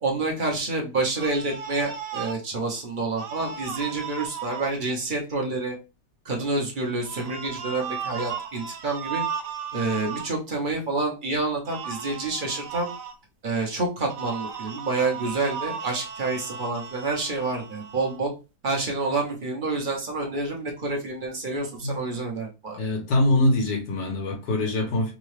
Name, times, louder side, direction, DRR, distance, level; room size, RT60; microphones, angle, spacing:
voice 1, 0.0-5.7 6.2-9.2 9.7-12.9 13.4-18.3 18.6-22.8, right 3 dB, 40° right, 0.8 m, -28 dB
sound 1, 1.2-2.4 3.1-4.7 7.0-10.3 11.7-13.1 14.1-18.2, right 7 dB, 75° right, 1.3 m, -35 dB
voice 2, 22.8-25.1, left 1 dB, 75° left, 1.7 m, -23 dB
3.7 x 2.3 x 3.2 m
omnidirectional pair, 1.9 m